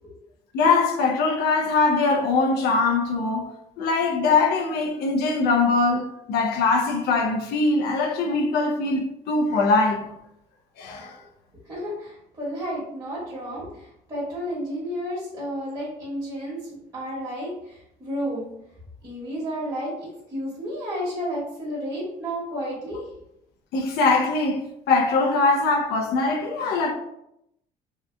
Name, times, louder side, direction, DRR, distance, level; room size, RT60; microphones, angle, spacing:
voice 1, 0.5-3.5 3.8-10.1 10.8-11.2 23.7-26.9, left 3 dB, 75° left, 0.5 m, -22 dB
voice 2, 11.6-18.5 19.0-23.1, equal, 20° right, 1.1 m, -32 dB
2.7 x 2.3 x 2.2 m
cardioid pair, 110°, 17 cm